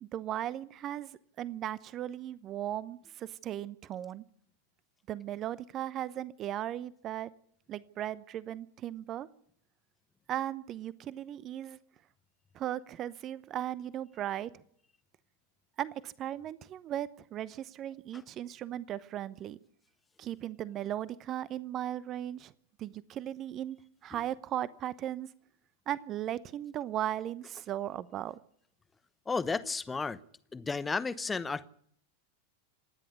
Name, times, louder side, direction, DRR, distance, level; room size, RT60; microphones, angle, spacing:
voice 1, 0.0-4.2 5.1-7.3 7.7-9.3 10.3-11.8 12.5-14.5 15.8-19.6 20.2-22.5 22.8-23.8 24.0-25.3 25.9-28.4, right 12 dB, 30° right, 19 dB, 0.8 m, -37 dB
voice 2, 29.3-30.2 30.5-31.7, left 4 dB, 15° left, 16 dB, 1.0 m, -33 dB
27.5 x 10.5 x 9.7 m, 0.65 s
figure-of-eight pair, 90°, 0 cm